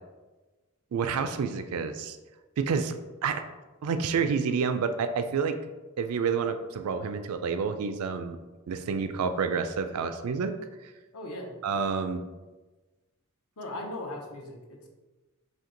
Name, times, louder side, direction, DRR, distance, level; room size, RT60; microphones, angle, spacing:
voice 1, 0.9-2.2 2.6-3.0 3.2-3.4 3.8-5.6 6.0-8.4 8.7-10.5 10.8-10.9 11.6-12.2, right 5 dB, 75° right, 8 dB, 0.4 m, -29 dB
voice 2, 11.1-11.5 13.6-14.9, left 1 dB, 75° left, 1 dB, 0.8 m, -38 dB
4.4 x 2.8 x 3.8 m, 1.2 s
head